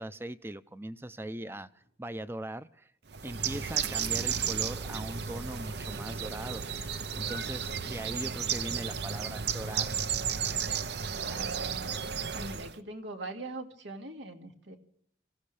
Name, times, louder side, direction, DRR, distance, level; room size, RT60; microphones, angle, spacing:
voice 1, 0.0-2.9 3.2-10.1, right 1 dB, 15° right, 12 dB, 0.6 m, -40 dB
Bird, 3.1-12.8, right 7 dB, 65° right, 0.8 m, -33 dB
voice 2, 11.2-12.0 12.3-14.8, right 2 dB, 85° right, 4 dB, 2.4 m, -42 dB
26.5 x 16.0 x 3.4 m, 0.69 s
head